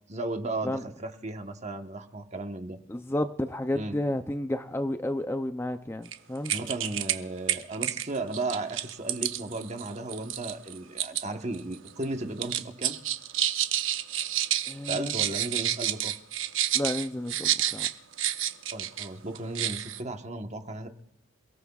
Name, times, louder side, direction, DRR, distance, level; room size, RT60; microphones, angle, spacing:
voice 1, 0.1-2.8 3.7-4.0 6.5-13.0 14.9-16.1 18.7-20.9, right 2 dB, 35° right, 5 dB, 1.2 m, -35 dB
voice 2, 2.9-6.5 14.7-15.1 16.7-17.9, left 1 dB, 10° left, 7 dB, 0.5 m, -31 dB
sound 1, 6.1-6.2 6.5-7.2 7.5-11.2 11.5-12.0 12.4-19.1 19.4-20.0, right 12 dB, 75° right, 0.8 m, -29 dB
28.5 x 17.5 x 2.4 m, 0.84 s
head